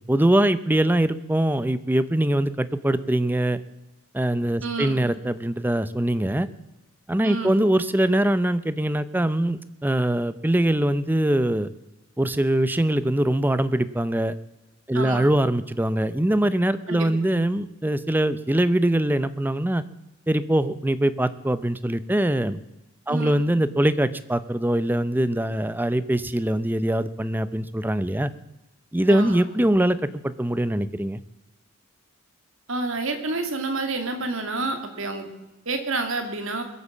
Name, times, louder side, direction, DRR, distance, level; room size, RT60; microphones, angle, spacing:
voice 1, 0.1-3.6 4.1-6.5 7.1-11.7 12.2-14.3 14.9-19.8 20.3-22.6 23.1-28.3 28.9-31.2, right 1 dB, 10° right, 14 dB, 0.5 m, -22 dB
voice 2, 4.6-5.0 7.2-7.6 14.9-15.3 16.9-17.1 23.1-23.4 29.1-29.4 32.7-35.3 35.7-36.6, right 3 dB, 60° right, 6 dB, 2.3 m, -29 dB
22.0 x 8.3 x 7.2 m, 1.1 s
head